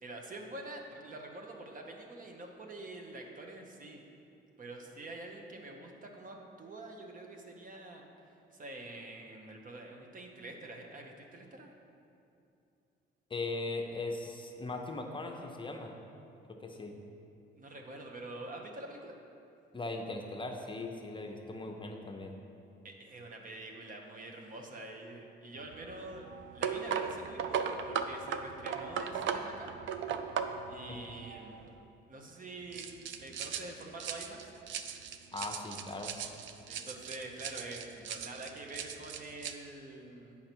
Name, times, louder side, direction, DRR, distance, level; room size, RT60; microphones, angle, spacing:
voice 1, 0.0-4.0 4.6-8.1 8.5-11.7 17.6-19.1 22.8-26.3 26.5-29.7 30.7-31.6 32.1-34.5 36.7-40.4, right 2 dB, 45° right, 2 dB, 1.0 m, -46 dB
voice 2, 13.3-15.9 16.5-17.0 19.7-22.3 30.9-31.0 35.3-36.1, left 2 dB, 25° left, 2 dB, 0.7 m, -39 dB
sound 1, 25.6-31.8 32.7-39.5, right 7 dB, 75° right, 0.5 m, -38 dB
7.9 x 5.6 x 4.5 m, 2.7 s
cardioid pair, 90°, 20 cm